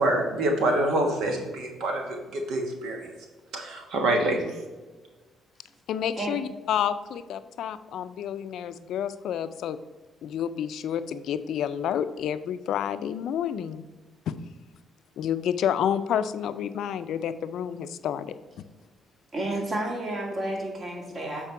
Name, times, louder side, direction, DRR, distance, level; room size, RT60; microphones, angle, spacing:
voice 1, 0.0-3.1 3.5-4.5, right 1 dB, 85° right, 3 dB, 1.3 m, -26 dB
voice 2, 5.9-9.8 10.2-13.8 14.3-14.4 15.2-18.6, left 9 dB, 75° left, 12 dB, 0.4 m, -29 dB
voice 3, 19.3-21.5, right 1 dB, 40° right, -1 dB, 2.0 m, -31 dB
7.4 x 4.5 x 4.4 m, 1.2 s
cardioid pair, 90°, 0 cm